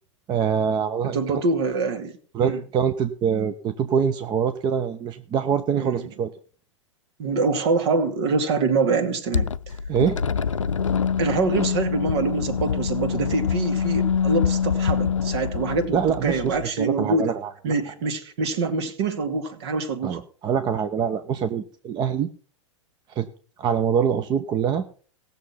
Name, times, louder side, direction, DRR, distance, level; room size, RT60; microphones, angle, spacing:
voice 1, 0.3-1.2 2.3-6.3 9.9-10.2 15.9-17.5 20.0-22.3 23.1-23.3 23.6-24.9, right 7 dB, 30° right, 9 dB, 0.8 m, -24 dB
voice 2, 1.0-2.1 2.4-2.6 5.7-6.0 7.2-9.5 11.2-17.4 17.6-20.2, right 4 dB, 55° right, 7 dB, 2.3 m, -25 dB
sound 1, 9.3-16.7, left 6 dB, 85° left, 0.5 m, -25 dB
18.0 x 6.9 x 5.7 m, 0.43 s
figure-of-eight pair, 100°, 16 cm